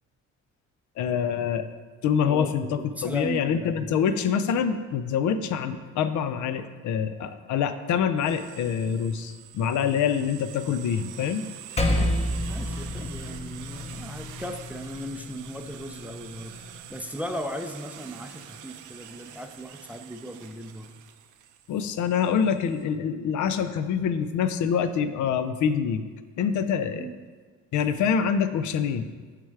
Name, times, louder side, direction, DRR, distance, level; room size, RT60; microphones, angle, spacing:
voice 1, 1.0-1.7 2.0-11.5 21.7-26.0 26.4-27.1 27.7-29.1, left 7 dB, 75° left, 11 dB, 0.5 m, -26 dB
voice 2, 2.2-3.9 12.5-16.6 16.9-20.9 27.0-27.1, equal, 5° right, 6 dB, 0.4 m, -37 dB
sound 1, 8.2-22.8, right 10 dB, 80° right, 0.5 m, -45 dB
Percussion, 11.8-16.5, left 1 dB, 20° left, 0.7 m, -30 dB
7.5 x 3.4 x 4.7 m, 1.5 s
cardioid pair, 90°, 30 cm